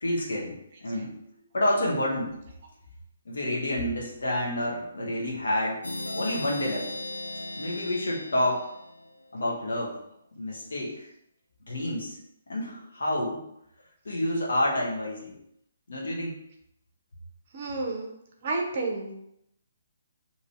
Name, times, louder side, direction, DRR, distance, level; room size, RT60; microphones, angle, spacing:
voice 1, 0.0-2.3 3.2-5.8 6.1-6.9 7.5-8.7 9.3-10.0 10.4-11.1 11.7-12.2 12.5-13.5 14.0-15.3 15.9-16.4, left 1 dB, 65° left, -3 dB, 1.0 m, -29 dB
sound 1, 5.8-9.4, left 1 dB, 80° left, 0.4 m, -37 dB
voice 2, 17.5-18.1 18.4-19.2, right 3 dB, 40° right, 1 dB, 0.7 m, -30 dB
2.8 x 2.6 x 4.3 m, 0.76 s
figure-of-eight pair, 135°, 0 cm